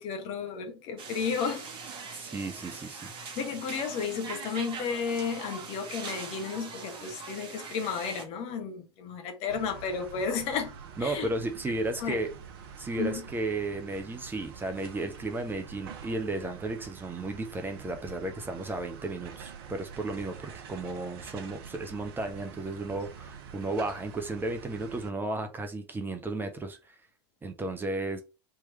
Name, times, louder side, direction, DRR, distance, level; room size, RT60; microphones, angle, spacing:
voice 1, 0.0-1.7 3.4-10.7 11.0-11.3 12.0-12.2 13.0-13.3, left 6 dB, 45° left, 1.1 m, -33 dB
sound 1, 1.0-8.2, right 5 dB, 35° right, 1.2 m, -42 dB
voice 2, 2.1-3.1 11.0-12.3 12.8-27.0 27.4-28.2, right 2 dB, 15° right, 0.7 m, -34 dB
sound 2, 9.5-25.1, right 7 dB, 55° right, 0.7 m, -46 dB
3.5 x 3.0 x 4.3 m
figure-of-eight pair, 80°, 15 cm